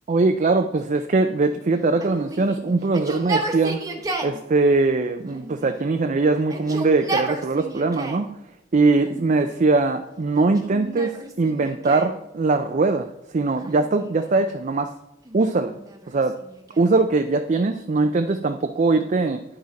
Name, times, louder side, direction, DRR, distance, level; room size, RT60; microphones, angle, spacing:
voice 1, 0.1-3.8 4.2-8.4 8.7-14.9 15.3-15.8 16.1-16.4 16.8-19.4, right 3 dB, 45° right, 6 dB, 0.4 m, -21 dB
Yell, 2.0-4.4 5.3-6.0 6.4-8.3 9.0-9.7 10.4-12.2 13.6-14.4 15.2-17.0, right 2 dB, 20° right, 1.1 m, -33 dB
10.0 x 6.4 x 4.1 m, 0.87 s
head